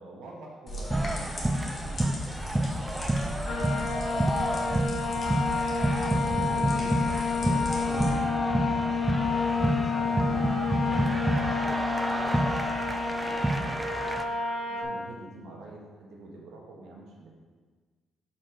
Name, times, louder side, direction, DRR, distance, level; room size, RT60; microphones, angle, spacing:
voice 1, 0.0-4.7 6.1-7.0 7.4-12.5 13.0-13.8 14.7-17.3, right 2 dB, 80° right, -2 dB, 1.5 m, -47 dB
sound 1, 0.7-8.1, equal, 35° left, 1.7 m, -38 dB
sound 2, 0.9-14.2, right 1 dB, 15° right, 0.5 m, -29 dB
sound 3, 3.5-14.8, left 4 dB, 75° left, 1.0 m, -30 dB
5.6 x 5.1 x 4.8 m, 1.4 s
cardioid pair, 90°, 0 cm